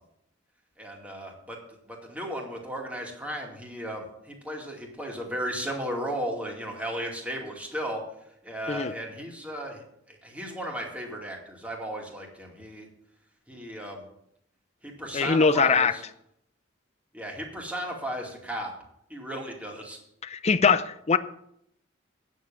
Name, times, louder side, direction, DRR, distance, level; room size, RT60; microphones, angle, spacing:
voice 1, 0.8-1.6 1.9-8.0 8.4-12.9 13.5-14.0 14.8-16.0 17.1-18.7 19.1-20.0, equal, 5° right, 0 dB, 2.4 m, -35 dB
voice 2, 15.1-15.9 20.2-21.2, left 5 dB, 35° left, 13 dB, 0.5 m, -22 dB
9.4 x 7.3 x 8.7 m, 0.75 s
head